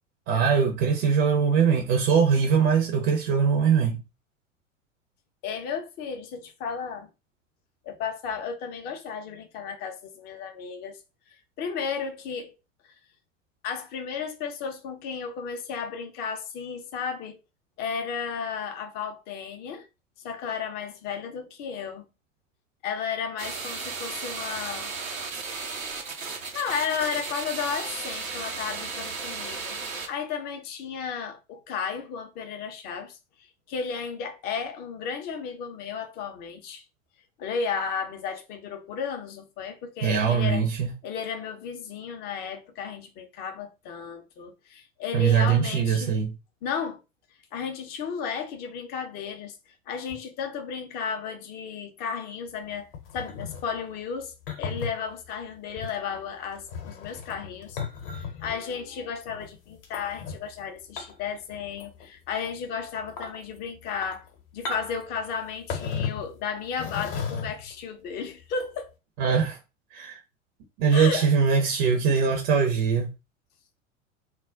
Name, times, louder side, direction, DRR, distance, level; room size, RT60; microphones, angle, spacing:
voice 1, 0.3-4.0 40.0-40.9 45.1-46.3 69.2-69.6 69.9-70.2 70.8-73.1, right 6 dB, 35° right, 0.6 m, -22 dB
voice 2, 5.4-7.1 7.8-11.0 11.6-12.5 12.8-12.9 13.6-17.4 17.8-19.9 20.2-22.1 22.8-24.9 26.5-36.8 37.4-40.6 41.0-46.2 46.6-47.0 47.5-49.6 49.9-52.9 53.1-64.3 64.5-68.9 70.9-71.3, left 6 dB, 25° left, 0.5 m, -34 dB
sound 1, 23.4-30.1, right 4 dB, 85° right, 0.7 m, -35 dB
sound 2, 52.9-53.7 54.5-54.9 55.8-56.0 56.6-58.7 59.8-60.4 61.0-61.3 61.6-62.1 62.4-62.5 63.0-63.4 63.9-64.3 64.6-65.1 65.7-66.3 66.8-67.7 68.6-68.8, left 5 dB, 45° left, 0.8 m, -34 dB
2.3 x 2.1 x 3.5 m
figure-of-eight pair, 85°, 39 cm